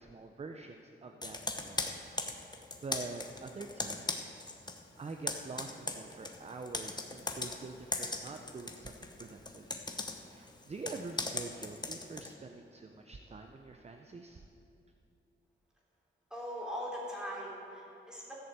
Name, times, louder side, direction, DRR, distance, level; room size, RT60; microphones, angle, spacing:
voice 1, 0.0-2.2 2.5-9.8 10.3-14.4, right 3 dB, 30° right, 5 dB, 0.6 m, -46 dB
Computer keyboard, 1.2-4.8 5.1-12.3, left 3 dB, 20° left, 0.9 m, -39 dB
voice 2, 16.3-18.4, equal, 5° right, -4 dB, 3.3 m, -40 dB
14.5 x 7.0 x 8.1 m, 2.8 s
wide cardioid pair, 135°, 21 cm